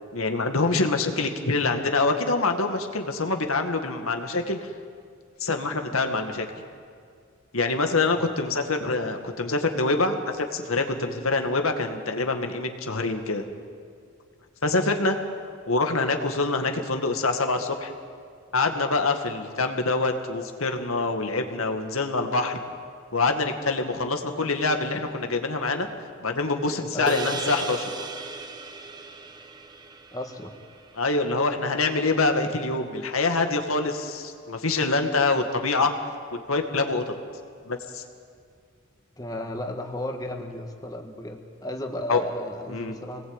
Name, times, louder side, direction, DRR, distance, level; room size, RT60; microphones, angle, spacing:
voice 1, 0.1-4.7 5.4-6.5 7.5-13.4 14.6-15.2 15.7-17.9 18.5-22.6 23.1-25.9 26.2-28.1 31.0-35.9 36.3-37.1 37.7-38.0 42.1-42.2 42.7-42.9, left 3 dB, 90° left, 5 dB, 2.0 m, -25 dB
voice 2, 7.8-8.3 12.9-13.1 26.9-27.2 30.1-30.5 35.8-35.9 39.2-43.3, left 1 dB, 15° left, 3 dB, 1.6 m, -35 dB
sound 1, 27.1-31.6, right 3 dB, 20° right, 1.1 m, -36 dB
26.0 x 20.0 x 9.0 m, 2.2 s
head